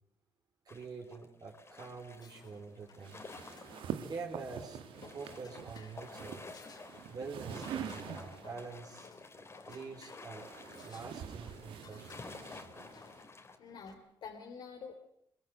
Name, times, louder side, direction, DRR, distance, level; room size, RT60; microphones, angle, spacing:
voice 1, 0.6-3.2 4.0-6.4 7.1-9.1 9.7-10.5 10.8-12.2, right 4 dB, 50° right, 1 dB, 4.4 m, -46 dB
sound 1, 0.7-4.0 4.3-4.4 4.7-13.6, left 3 dB, 30° left, 2.9 m, -52 dB
sound 2, 2.2-13.9, left 5 dB, 50° left, 3.2 m, -59 dB
sound 3, 3.0-8.6 9.7-13.2, right 9 dB, 80° right, 1.5 m, -45 dB
voice 2, 13.3-14.9, left 6 dB, 70° left, 3 dB, 3.2 m, -48 dB
22.5 x 21.5 x 8.0 m, 0.72 s
cardioid pair, 85°, 9 cm